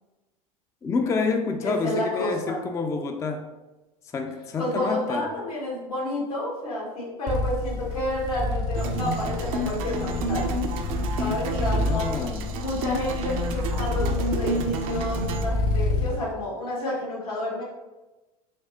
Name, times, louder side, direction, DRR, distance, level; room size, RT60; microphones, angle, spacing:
voice 1, 0.8-3.4 4.1-5.4 11.8-12.5, left 4 dB, 15° left, 5 dB, 0.3 m, -28 dB
voice 2, 1.6-2.6 4.6-10.5 11.2-12.1 12.6-17.6, left 1 dB, 75° left, -5 dB, 1.4 m, -30 dB
sound 1, 7.3-16.2, left 2 dB, 50° left, 0.8 m, -29 dB
sound 2, 8.8-15.4, right 2 dB, 65° right, 0.5 m, -31 dB
3.5 x 2.9 x 2.7 m, 1.1 s
hypercardioid pair, 75°, 19 cm